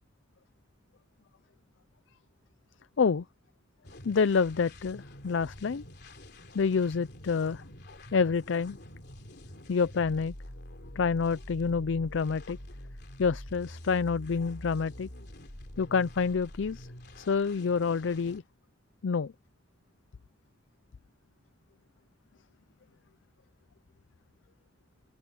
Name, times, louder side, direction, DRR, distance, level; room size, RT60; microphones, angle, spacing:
sound 1, 3.8-18.4, left 1 dB, 60° left, 3.2 m, -47 dB
voice 1, 4.1-5.8 6.5-7.6 8.1-8.8 9.7-10.3 11.0-12.6 13.2-15.1 15.8-16.9 17.2-18.4 19.0-19.3, left 5 dB, 80° left, 0.5 m, -28 dB
open air
head